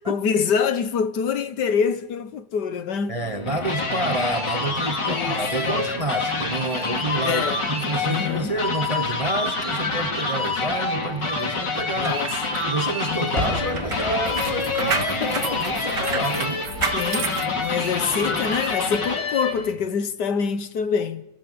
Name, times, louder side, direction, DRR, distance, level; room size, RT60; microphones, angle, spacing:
voice 1, 0.0-3.2 5.0-5.8 7.2-7.6 8.0-8.5 12.0-12.3 13.1-13.5 14.8-15.6 16.2-16.3 16.9-21.2, left 6 dB, 70° left, 1.7 m, -26 dB
voice 2, 3.1-12.2 12.7-16.6, right 2 dB, 25° right, 0.8 m, -29 dB
sound 1, 3.2-19.7, left 3 dB, 90° left, 3.5 m, -27 dB
sound 2, 11.9-18.1 18.6-18.8, right 5 dB, 85° right, 2.3 m, -31 dB
sound 3, 13.3-19.2, left 1 dB, 40° left, 6.0 m, -37 dB
29.5 x 15.5 x 8.9 m
omnidirectional pair, 1.9 m